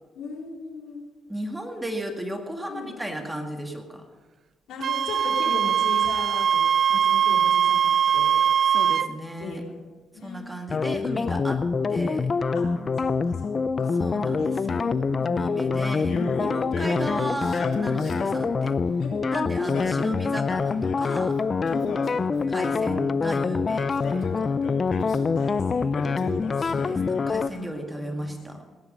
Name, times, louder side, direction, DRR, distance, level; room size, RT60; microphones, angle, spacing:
voice 1, 0.2-1.0 2.7-2.9 4.7-6.6 7.0-8.4 9.4-9.9 10.1-10.5 12.5-12.6 13.0-13.5 13.8-15.8 19.0-19.8 21.6-22.0 25.3-25.9 26.2-27.0 27.5-28.6, left 3 dB, 80° left, -1 dB, 4.0 m, -38 dB
voice 2, 1.3-4.0 8.7-9.6 10.2-11.6 11.9-12.3 13.9-18.8 19.3-21.4 22.5-24.6 26.6-28.6, right 1 dB, 10° right, 4 dB, 2.0 m, -35 dB
Wind instrument woodwind instrument, 4.8-9.1, right 8 dB, 55° right, 0.5 m, -21 dB
sound 1, 10.7-27.5, left 5 dB, 40° left, 0.5 m, -25 dB
Male speech man speaking, 16.0-18.5 19.5-21.2 21.7-23.0 23.8-25.3 25.9-27.4, left 3 dB, 65° left, 2.6 m, -36 dB
17.5 x 10.5 x 5.3 m, 1.3 s
cardioid pair, 90°, 0 cm